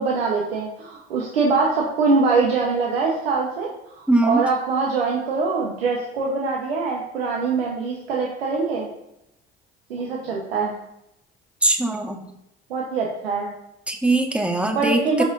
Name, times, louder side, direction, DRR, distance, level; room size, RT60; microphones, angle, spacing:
voice 1, 0.0-3.7 3.9-8.9 9.9-10.7 12.7-13.5 14.7-15.2, right 4 dB, 90° right, -2 dB, 1.1 m, -23 dB
voice 2, 4.1-4.4 11.6-12.2 13.9-15.2, right 2 dB, 5° right, 3 dB, 1.5 m, -21 dB
12.5 x 5.3 x 2.6 m, 0.83 s
hypercardioid pair, 55°, 30 cm